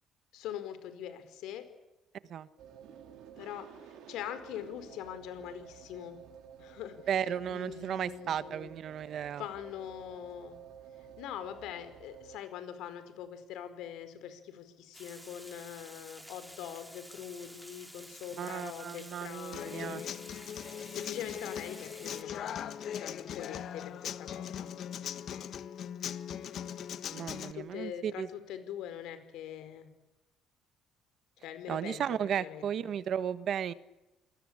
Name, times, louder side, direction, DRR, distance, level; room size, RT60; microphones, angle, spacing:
voice 1, 0.3-1.7 3.4-6.2 6.6-7.0 7.5-8.7 9.4-10.6 11.0-20.1 20.5-20.6 20.9-24.7 25.3-25.5 27.5-29.9 31.4-32.9, left 10 dB, 75° left, 11 dB, 4.8 m, -43 dB
sound 1, 2.6-12.4, right 8 dB, 70° right, 4.0 m, -52 dB
voice 2, 7.1-9.4 18.4-20.0 27.1-28.3 31.7-33.7, right 9 dB, 45° right, 14 dB, 1.4 m, -34 dB
Water, 14.9-22.2, equal, ahead, 2.5 m, -51 dB
Human voice / Acoustic guitar, 19.5-27.5, left 9 dB, 50° left, 1.4 m, -40 dB
28.5 x 20.5 x 8.8 m, 1.0 s
cardioid pair, 155°, 0 cm